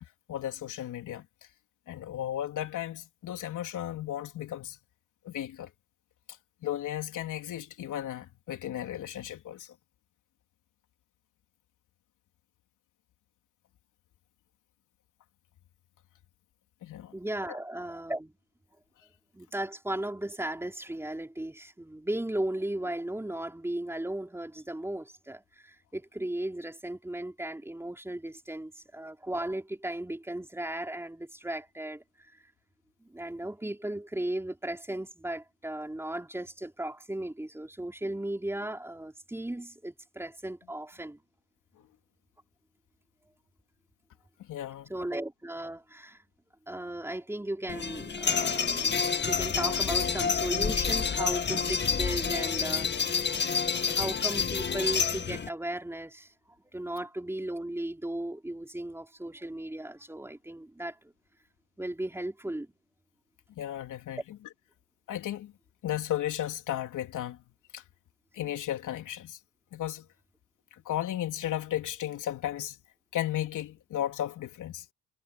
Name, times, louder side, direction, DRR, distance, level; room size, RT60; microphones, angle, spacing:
voice 1, 0.3-1.3 1.9-4.8 5.2-5.7 6.6-9.8 16.8-17.1 17.5-17.6 44.4-44.9 63.6-64.2 65.1-65.5 65.8-67.4 67.7-67.8 68.3-69.4 69.7-70.1 70.7-72.8 73.1-74.9, left 12 dB, 65° left, 3.6 m, -34 dB
voice 2, 17.1-18.3 19.3-32.4 33.0-41.2 44.9-46.2 46.7-53.2 53.9-56.3 56.7-61.0 61.8-62.7, right 1 dB, 5° right, 4.1 m, -36 dB
sound 1, 47.7-55.5, left 6 dB, 30° left, 2.0 m, -28 dB
cardioid pair, 110°, 33 cm